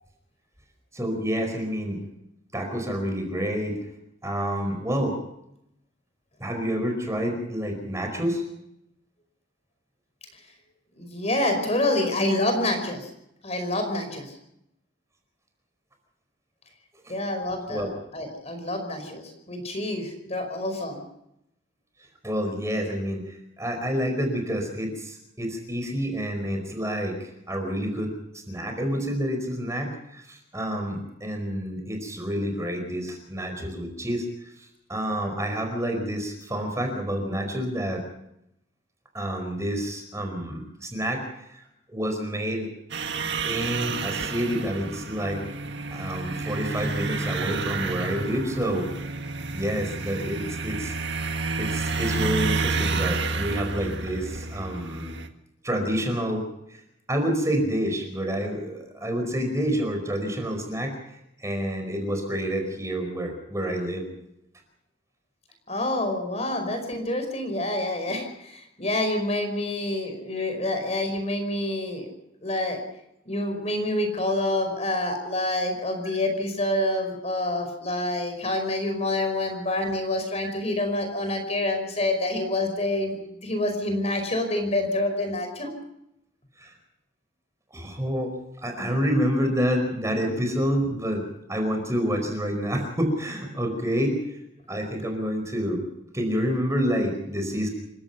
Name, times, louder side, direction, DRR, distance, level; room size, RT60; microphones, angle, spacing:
voice 1, 0.9-2.0 2.5-3.8 4.2-5.2 6.4-8.4 17.0-17.1 17.7-17.9 22.2-34.2 34.9-38.0 39.1-41.2 41.5-42.7 43.4-45.4 45.9-48.9 49.5-50.9 51.6-55.1 55.6-56.8 57.1-64.0 68.1-68.2 80.4-80.5 86.6-86.7 87.7-88.3 88.6-91.2 91.5-94.4 94.7-95.8 96.1-97.7, equal, 15° right, 4 dB, 4.8 m, -28 dB
voice 2, 11.0-13.1 13.4-14.3 17.1-21.0 65.7-72.1 72.4-72.8 73.3-83.2 83.4-85.7, left 1 dB, 35° left, 6 dB, 5.1 m, -27 dB
sound 1, 42.9-55.3, right 3 dB, 65° right, 1.9 m, -30 dB
28.0 x 16.5 x 5.6 m, 0.80 s
head